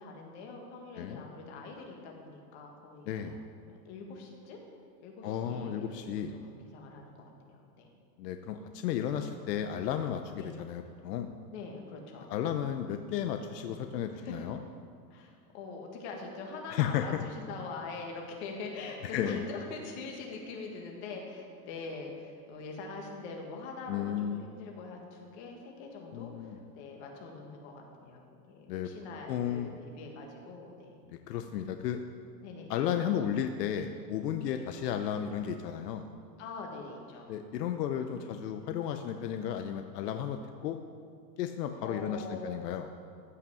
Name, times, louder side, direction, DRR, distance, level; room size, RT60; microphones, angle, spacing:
voice 1, 0.0-3.4 3.7-4.6 5.0-6.0 6.3-7.9 10.3-10.6 11.5-12.3 13.5-13.6 14.1-14.4 15.1-31.0 32.4-32.7 34.4-34.6 36.4-37.3 38.2-38.3 41.8-42.6, left 4 dB, 45° left, 1 dB, 1.9 m, -43 dB
voice 2, 3.1-3.4 5.2-6.3 8.2-11.3 12.3-14.6 16.7-17.2 19.0-19.4 23.9-24.4 26.1-26.6 28.7-28.9 29.3-29.8 31.1-32.0 32.7-36.1 37.3-40.8 41.4-42.9, left 9 dB, 85° left, 7 dB, 0.8 m, -33 dB
14.5 x 5.7 x 6.9 m, 2.2 s
supercardioid pair, 175°, 47 cm